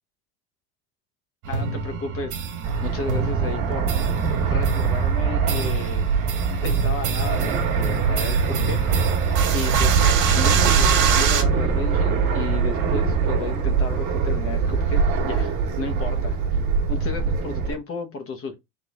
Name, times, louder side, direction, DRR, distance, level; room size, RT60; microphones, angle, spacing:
sound 1, 1.4-11.4, right 6 dB, 55° right, 1.7 m, -26 dB
voice 1, 1.5-2.4 2.8-4.0 4.4-6.0 6.6-8.8 9.5-16.4 16.9-18.6, left 4 dB, 30° left, 1.2 m, -33 dB
Fixed-wing aircraft airplane, 2.6-17.7, right 5 dB, 40° right, 1.7 m, -22 dB
3.9 x 3.7 x 3.6 m
supercardioid pair, 135°, 46 cm